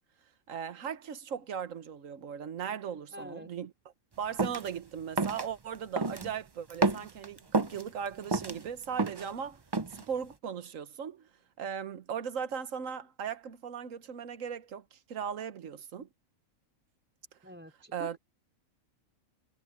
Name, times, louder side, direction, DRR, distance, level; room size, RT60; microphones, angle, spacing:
voice 1, 0.5-3.7 4.2-9.6 9.9-11.3 11.6-16.1 17.9-18.2, right 7 dB, 70° right, 1.5 m, -38 dB
voice 2, 3.1-3.5 17.4-18.2, equal, 10° right, 4.3 m, -45 dB
sound 1, 4.4-4.7 5.2-5.4 6.0-6.3 6.7-7.8 8.2-9.3 9.7-10.0, right 3 dB, 25° right, 0.5 m, -29 dB
omnidirectional pair, 1.4 m